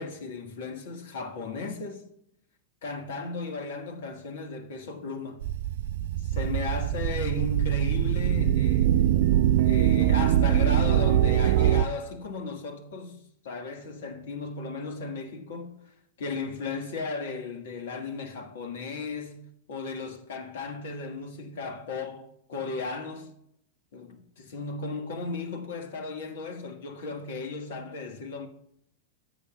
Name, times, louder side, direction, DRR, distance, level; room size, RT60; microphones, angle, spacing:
voice 1, 0.0-2.0 2.8-5.4 6.2-9.0 9.6-19.4 19.7-23.3 23.9-28.5, left 4 dB, 60° left, 1.4 m, -36 dB
sound 1, 5.4-11.9, right 11 dB, 55° right, 0.4 m, -23 dB
16.5 x 8.3 x 2.2 m
figure-of-eight pair, 90°, 0 cm